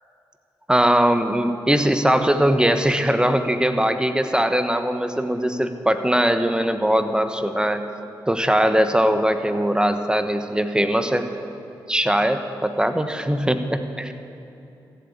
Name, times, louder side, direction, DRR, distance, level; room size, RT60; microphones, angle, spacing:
voice 1, 0.7-7.9 8.3-11.3 11.9-14.1, equal, 10° right, 8 dB, 1.2 m, -20 dB
14.5 x 8.0 x 8.7 m, 2.8 s
supercardioid pair, 45°, 9 cm